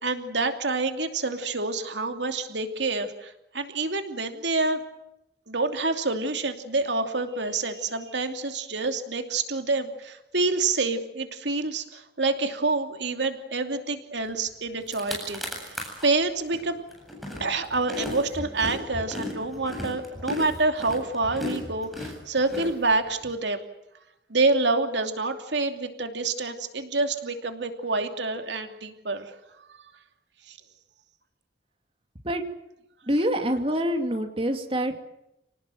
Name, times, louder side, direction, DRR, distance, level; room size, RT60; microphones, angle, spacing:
voice 1, 0.0-4.8 5.5-15.8 16.0-16.8 17.4-23.6 24.3-29.3 30.5-30.6, right 3 dB, 80° right, 6 dB, 2.8 m, -27 dB
sound 1, 14.5-14.6 14.8-16.1 16.5-23.3, left 1 dB, ahead, 7.9 m, -35 dB
voice 2, 33.1-35.0, equal, 30° right, 5 dB, 2.5 m, -26 dB
30.0 x 19.0 x 7.8 m, 0.88 s
head